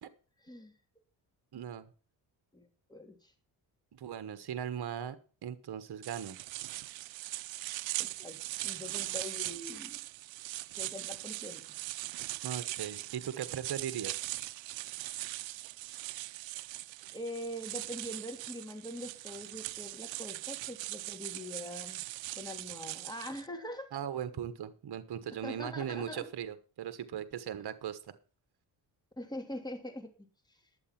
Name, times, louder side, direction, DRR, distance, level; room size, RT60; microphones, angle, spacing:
voice 1, 0.4-0.7 2.5-3.3 8.0-10.0 10.8-11.8 17.1-22.0 22.3-23.9 25.3-26.3 29.2-30.1 30.5-30.6, left 1 dB, 10° left, 4 dB, 2.7 m, -43 dB
voice 2, 1.5-1.8 3.9-5.2 5.4-6.4 12.4-14.1 23.9-28.0, right 9 dB, 60° right, 12 dB, 1.3 m, -38 dB
sound 1, 6.0-23.5, right 17 dB, 80° right, 0.6 m, -40 dB
11.0 x 8.0 x 5.9 m, 0.38 s
cardioid pair, 70°, 45 cm